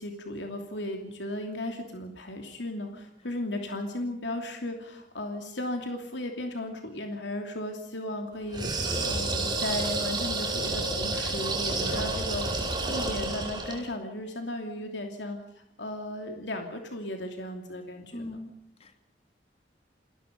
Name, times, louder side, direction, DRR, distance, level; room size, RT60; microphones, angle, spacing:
voice 1, 0.0-18.4, left 1 dB, 85° left, 4 dB, 3.0 m, -35 dB
sound 1, 8.5-13.9, right 2 dB, 25° right, 5.3 m, -30 dB
voice 2, 18.1-18.5 18.8-19.1, left 1 dB, 35° left, 7 dB, 2.5 m, -40 dB
29.0 x 19.5 x 5.4 m, 0.77 s
head